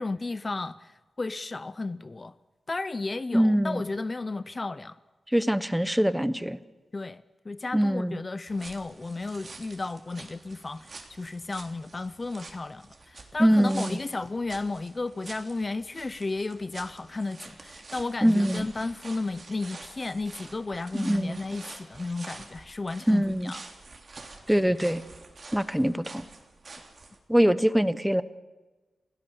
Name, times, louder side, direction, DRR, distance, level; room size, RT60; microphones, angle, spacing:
voice 1, 0.0-2.3 2.7-5.0 6.9-23.6, left 3 dB, 30° left, 15 dB, 0.6 m, -33 dB
voice 2, 3.3-3.8 5.3-6.6 7.7-8.2 13.4-14.0 18.2-18.7 20.9-21.4 23.1-23.5 24.5-25.0 25.5-26.3 27.3-28.2, equal, 5° right, 15 dB, 0.9 m, -23 dB
sound 1, 8.5-27.2, right 3 dB, 45° right, 3.3 m, -47 dB
28.0 x 17.0 x 7.1 m, 1.2 s
wide cardioid pair, 95°, 0 cm